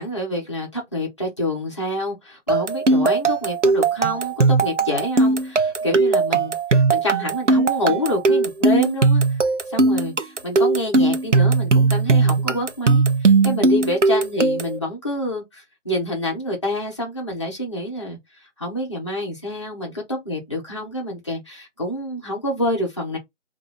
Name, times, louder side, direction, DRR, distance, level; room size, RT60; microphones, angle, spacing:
voice 1, 0.0-9.4 9.7-18.2 18.6-23.2, left 1 dB, 25° left, 1.0 m, -27 dB
sound 1, 2.5-14.8, right 3 dB, 70° right, 0.7 m, -18 dB
2.8 x 2.7 x 4.4 m
figure-of-eight pair, 165°, 38 cm